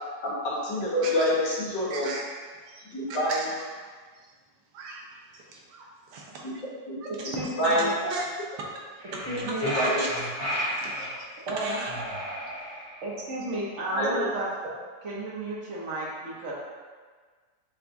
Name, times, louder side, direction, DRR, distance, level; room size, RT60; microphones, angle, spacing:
voice 1, 0.2-2.1 2.8-3.5 6.4-6.5 6.9-7.0 7.6-7.9 9.6-10.0 13.9-14.3, equal, 75° left, -7 dB, 1.8 m, -26 dB
voice 2, 1.9-3.5 3.8-4.3 4.7-6.6 7.0-8.3 9.5-11.9 12.4-12.5, right 3 dB, 75° right, -1 dB, 1.2 m, -38 dB
voice 3, 7.3-8.2 9.3-9.7 11.5-11.8 13.0-14.7 15.0-16.5, right 1 dB, 50° right, -6 dB, 1.0 m, -33 dB
sound 1, 9.0-11.2 11.8-13.1, equal, 25° left, 0.9 m, -33 dB
6.8 x 2.3 x 2.6 m, 1.5 s
omnidirectional pair, 2.0 m